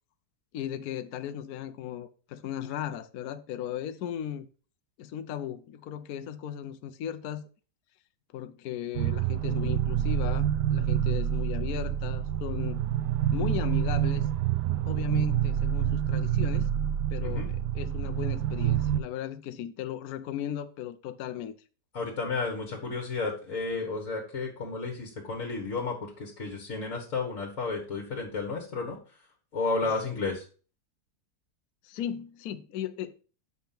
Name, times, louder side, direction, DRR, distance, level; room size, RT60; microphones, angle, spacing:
voice 1, 0.5-4.5 5.0-7.4 8.3-12.8 13.3-14.3 14.9-16.7 17.1-21.5 29.8-29.9 31.8-33.1, left 10 dB, 70° left, 1.0 m, -36 dB
sound 1, 9.0-19.0, right 10 dB, 80° right, 1.2 m, -27 dB
voice 2, 21.9-29.0 29.5-30.4, left 3 dB, 50° left, 1.8 m, -32 dB
6.8 x 5.2 x 5.8 m
omnidirectional pair, 1.8 m